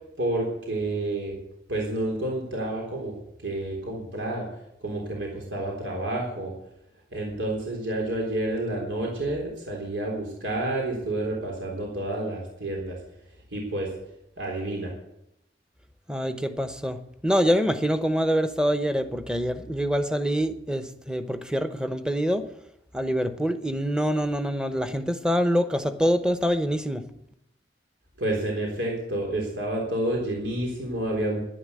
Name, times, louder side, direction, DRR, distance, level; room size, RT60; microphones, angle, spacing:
voice 1, 0.2-1.4 1.7-3.1 3.4-4.5 4.8-6.5 7.1-13.0 13.5-13.9 14.4-14.9 28.2-31.4, right 1 dB, 85° right, -1 dB, 3.8 m, -29 dB
voice 2, 16.1-22.4 22.9-27.0, equal, 5° right, 9 dB, 0.9 m, -25 dB
11.0 x 11.0 x 8.5 m, 0.80 s
head